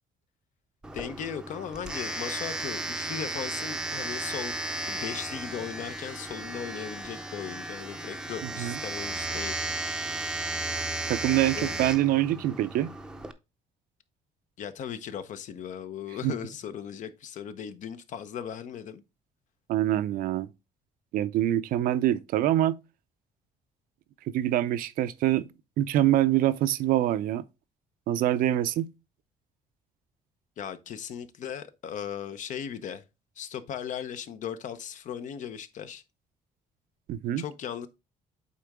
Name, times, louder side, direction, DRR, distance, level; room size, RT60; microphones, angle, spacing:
Domestic sounds home sounds, 0.8-13.3, right 2 dB, 5° right, 0.6 m, -34 dB
voice 1, 0.9-9.6 11.5-11.8 14.6-19.0 30.6-33.0 33.4-36.0 37.4-37.9, left 8 dB, 60° left, 0.8 m, -37 dB
voice 2, 8.4-8.7 11.1-12.9 16.2-16.3 19.7-20.5 21.1-22.8 24.3-25.5 25.8-27.4 28.1-28.9 37.1-37.4, right 13 dB, 75° right, 0.5 m, -25 dB
8.5 x 3.8 x 3.5 m
cardioid pair, 125°, 15 cm